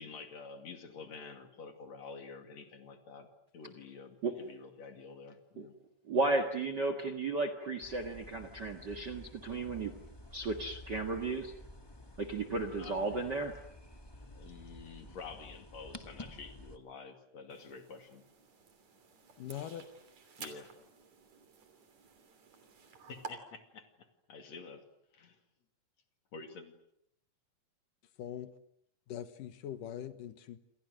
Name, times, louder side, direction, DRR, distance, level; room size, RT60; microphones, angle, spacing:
voice 1, 0.0-3.3 3.5-5.7 12.8-13.3 14.2-18.2 20.4-20.7 23.1-24.8 25.1-25.4 26.3-26.7, left 4 dB, 55° left, 3.5 m, -49 dB
voice 2, 6.1-9.9 10.3-11.5 12.2-13.5, right 3 dB, 40° right, 1.9 m, -34 dB
sound 1, 7.8-16.8, left 1 dB, 10° left, 1.3 m, -51 dB
sound 2, 17.5-23.3, right 5 dB, 55° right, 4.3 m, -52 dB
voice 3, 19.4-19.9 28.2-28.5 29.1-30.6, left 10 dB, 75° left, 2.9 m, -42 dB
28.5 x 27.5 x 6.5 m
omnidirectional pair, 3.9 m